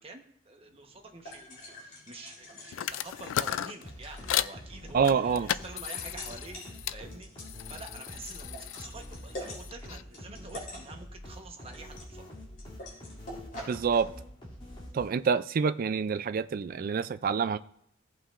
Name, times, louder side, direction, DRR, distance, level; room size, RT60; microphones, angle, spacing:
voice 1, 0.0-7.3 7.7-12.3, right 3 dB, 30° right, 3 dB, 1.1 m, -47 dB
sound 1, 0.7-14.0, left 1 dB, 45° left, 3.7 m, -47 dB
sound 2, 2.7-4.6 5.0-7.0 7.4-10.0, left 11 dB, 90° left, 0.3 m, -35 dB
sound 3, 3.8-15.4, equal, 25° left, 2.7 m, -46 dB
voice 2, 4.9-5.5 13.7-14.1 14.9-17.6, right 6 dB, 45° right, 12 dB, 0.3 m, -27 dB
16.5 x 5.7 x 2.5 m, 0.72 s
head